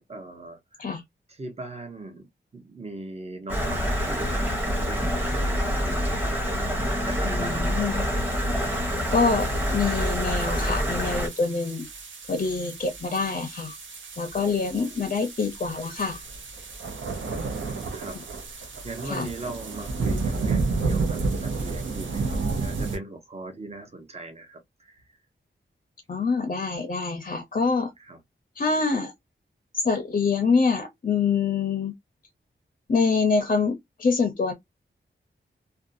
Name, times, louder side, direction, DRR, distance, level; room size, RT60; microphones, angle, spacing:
voice 1, 0.1-0.9 1.3-2.3 2.5-7.8 14.4-15.2 17.2-25.2 28.0-28.2, right 2 dB, 35° right, 0.7 m, -40 dB
Stream, 3.5-11.3, equal, 10° right, 0.9 m, -26 dB
voice 2, 7.2-8.0 9.1-11.9 12.3-13.7 14.2-16.2 19.1-19.3 26.1-27.9 28.6-29.1 29.7-31.9 32.9-34.5, left 4 dB, 45° left, 0.5 m, -25 dB
sound 1, 7.8-23.0, right 4 dB, 75° right, 0.7 m, -32 dB
2.6 x 2.2 x 2.5 m
wide cardioid pair, 100°, 20 cm